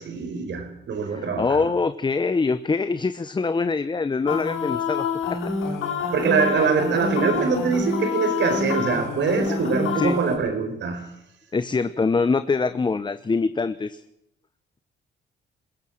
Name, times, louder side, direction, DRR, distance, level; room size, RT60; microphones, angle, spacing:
voice 1, 0.0-1.7 6.1-11.0, right 5 dB, 65° right, 7 dB, 5.1 m, -24 dB
voice 2, 1.1-5.4 9.9-10.2 11.5-14.0, left 4 dB, 25° left, 12 dB, 0.9 m, -24 dB
sound 1, 4.3-10.3, left 4 dB, 80° left, 6.5 m, -27 dB
21.5 x 16.5 x 7.8 m, 0.78 s
cardioid pair, 90°, 20 cm